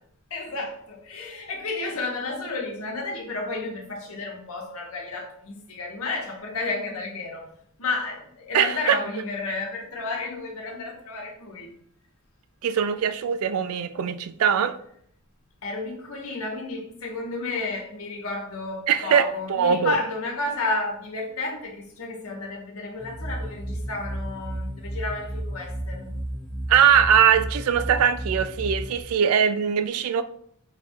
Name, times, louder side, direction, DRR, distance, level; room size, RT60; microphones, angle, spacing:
voice 1, 0.3-7.5 7.8-11.8 15.6-26.1, left 3 dB, 75° left, 1.0 m, -32 dB
voice 2, 8.5-9.0 12.6-14.8 18.9-20.0 26.7-30.2, right 7 dB, 80° right, 0.3 m, -21 dB
sound 1, 23.0-29.0, right 1 dB, 5° left, 0.4 m, -33 dB
4.0 x 2.4 x 4.2 m
head